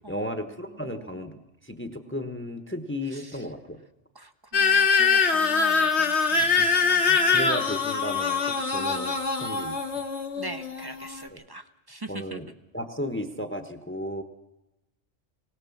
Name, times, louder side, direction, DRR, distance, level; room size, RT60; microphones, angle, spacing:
voice 1, 0.1-3.8 6.4-6.7 7.1-9.8 11.3-11.4 12.1-14.2, equal, 10° left, 8 dB, 1.0 m, -35 dB
voice 2, 4.2-7.4 10.4-12.4, right 2 dB, 25° right, 10 dB, 0.7 m, -42 dB
sound 1, 4.5-11.3, left 5 dB, 70° left, 1.7 m, -23 dB
20.0 x 18.5 x 7.2 m, 0.97 s
omnidirectional pair, 1.2 m